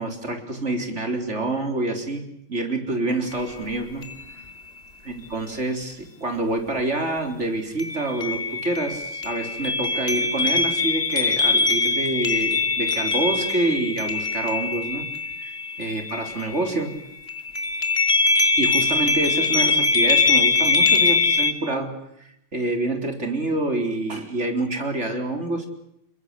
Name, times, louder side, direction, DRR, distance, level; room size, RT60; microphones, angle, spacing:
voice 1, 0.0-4.4 5.0-15.1 15.4-15.5 15.8-17.0 18.5-21.9 22.2-25.7, right 2 dB, 50° right, 5 dB, 4.3 m, -27 dB
sound 1, 3.3-3.4 4.0-4.6 7.8-16.9 17.3-21.5, left 3 dB, 40° left, 2.8 m, -22 dB
29.0 x 22.5 x 8.2 m, 0.77 s
omnidirectional pair, 1.6 m